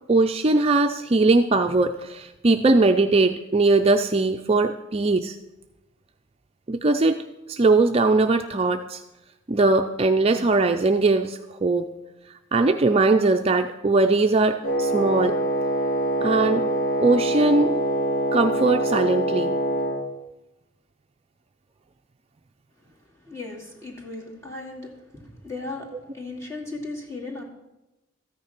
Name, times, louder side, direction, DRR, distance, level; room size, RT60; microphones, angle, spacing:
voice 1, 0.1-5.4 6.7-7.2 7.5-9.0 9.5-11.9 12.5-15.3 16.2-16.7 17.0-17.7 18.3-19.6, right 3 dB, 30° right, 5 dB, 0.4 m, -20 dB
Wind instrument woodwind instrument, 14.6-20.0, right 1 dB, 50° left, 3.2 m, -24 dB
voice 2, 23.1-27.4, left 2 dB, 15° left, -2 dB, 2.5 m, -37 dB
14.0 x 9.5 x 5.9 m, 0.96 s
head